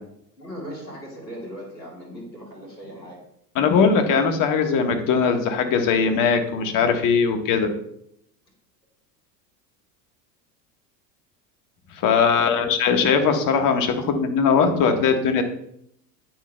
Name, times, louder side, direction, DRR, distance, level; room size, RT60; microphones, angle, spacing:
voice 1, 0.4-3.2 12.3-12.9, equal, 85° left, -2 dB, 3.7 m, -38 dB
voice 2, 3.5-7.7 11.9-15.4, left 5 dB, 40° left, 6 dB, 1.5 m, -20 dB
9.6 x 9.2 x 2.3 m, 0.72 s
figure-of-eight pair, 80°, 49 cm